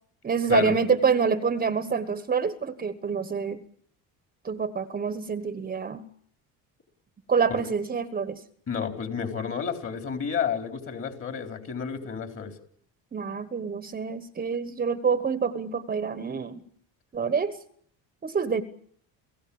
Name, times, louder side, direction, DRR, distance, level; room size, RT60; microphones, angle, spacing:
voice 1, 0.2-3.6 4.4-6.0 7.3-8.4 13.1-16.6 17.1-17.5 18.2-18.6, right 6 dB, 25° right, 13 dB, 1.2 m, -26 dB
voice 2, 8.7-12.5, left 7 dB, 35° left, 6 dB, 4.2 m, -30 dB
29.0 x 16.5 x 8.7 m, 0.62 s
cardioid pair, 130°, 36 cm